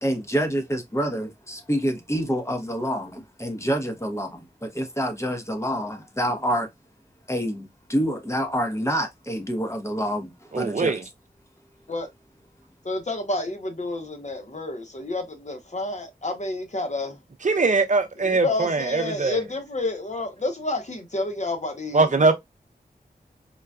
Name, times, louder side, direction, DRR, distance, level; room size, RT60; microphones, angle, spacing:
voice 1, 0.0-6.7 7.3-10.9, equal, 15° left, 0.9 m, -27 dB
voice 2, 10.5-11.0 17.4-19.4 21.9-22.3, right 3 dB, 50° right, 0.7 m, -21 dB
voice 3, 12.8-17.2 18.2-22.3, left 2 dB, 45° left, 1.0 m, -30 dB
3.9 x 2.3 x 2.3 m
cardioid pair, 45°, 17 cm